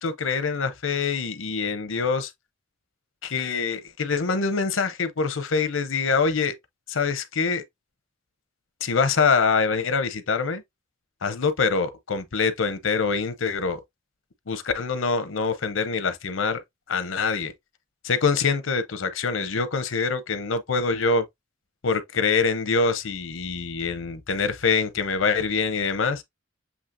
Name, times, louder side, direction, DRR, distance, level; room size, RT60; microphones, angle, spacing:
voice 1, 0.0-2.3 3.2-6.5 6.9-7.6 8.8-10.6 11.2-13.8 14.5-16.6 16.9-17.5 18.0-21.2 21.8-26.2, left 5 dB, 85° left, 0.8 m, -25 dB
7.3 x 2.8 x 2.6 m
head